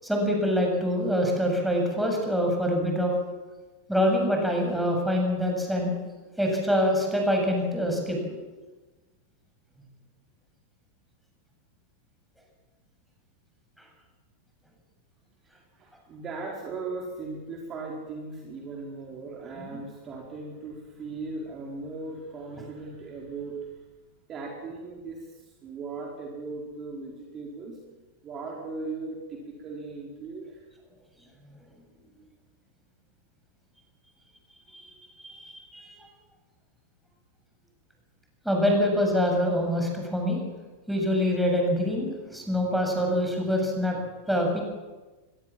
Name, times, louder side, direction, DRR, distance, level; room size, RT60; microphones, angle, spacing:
voice 1, 0.0-3.1 3.9-5.9 6.4-8.4 34.7-34.9 35.2-36.1 38.4-40.4 40.9-44.0 44.3-44.6, equal, ahead, 1 dB, 7.7 m, -25 dB
voice 2, 15.5-23.7 24.3-27.8 28.2-30.7, right 3 dB, 30° right, -1 dB, 4.7 m, -38 dB
24.5 x 22.0 x 7.6 m, 1.2 s
figure-of-eight pair, 90°, 0 cm